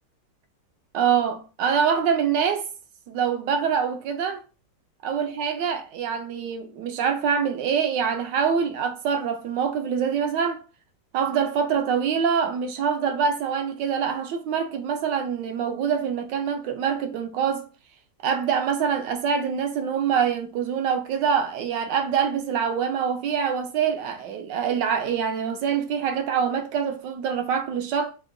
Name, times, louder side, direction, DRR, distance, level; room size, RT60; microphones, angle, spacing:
voice 1, 0.9-2.7 3.1-4.4 5.0-10.6 11.1-17.7 18.2-28.1, right 7 dB, 80° right, 1.3 m, -25 dB
4.5 x 2.1 x 2.6 m
omnidirectional pair, 1.9 m